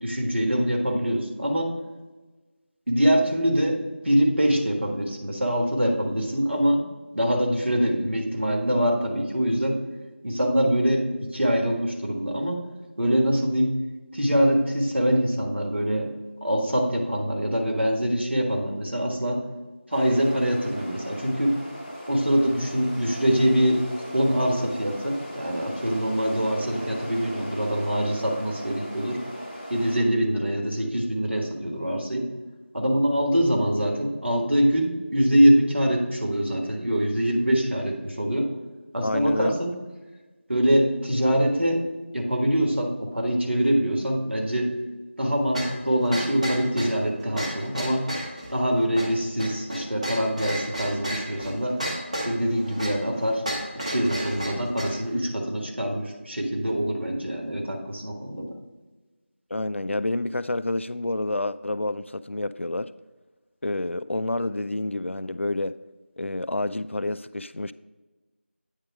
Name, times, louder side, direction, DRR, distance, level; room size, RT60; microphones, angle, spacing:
voice 1, 0.0-1.7 2.9-3.8 4.0-6.8 7.1-9.8 10.2-11.0 11.3-12.6 13.0-13.7 14.1-16.1 16.4-19.4 19.9-21.5 22.1-23.8 24.1-29.2 29.7-32.3 32.7-38.4 38.9-39.7 40.5-41.8 42.1-44.7 45.2-48.0 48.5-51.7 52.2-53.4 53.8-58.5, equal, 65° right, 1.5 m, -24 dB
sound 1, 19.9-30.0, equal, 10° right, 0.8 m, -38 dB
voice 2, 39.0-39.5 59.5-62.9 63.6-65.8 66.2-67.7, left 2 dB, 80° left, 0.3 m, -28 dB
sound 2, 45.5-55.0, equal, 35° right, 0.9 m, -33 dB
8.9 x 3.7 x 4.7 m
figure-of-eight pair, 170°, 7 cm